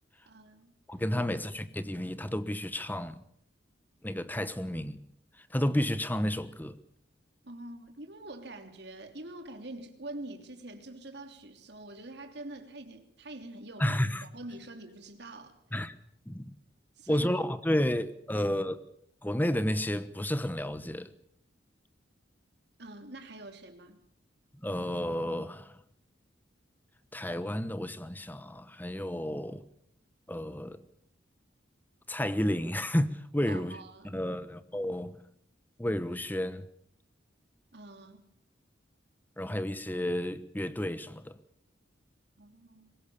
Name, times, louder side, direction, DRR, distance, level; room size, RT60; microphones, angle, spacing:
voice 1, 0.2-0.7 7.4-14.0 14.3-15.6 17.0-17.3 18.3-18.5 22.8-24.0 33.5-34.3 37.7-38.2 42.4-42.9, right 2 dB, 60° right, 3.1 m, -45 dB
voice 2, 0.9-3.2 4.0-5.0 5.4-6.8 13.8-14.2 15.7-15.9 16.3-16.5 17.1-18.8 19.2-21.1 24.5-25.8 27.1-29.7 30.3-30.8 32.1-33.8 34.0-35.2 35.8-36.7 39.4-41.4, left 1 dB, 10° left, 1.1 m, -31 dB
23.5 x 20.5 x 7.2 m
head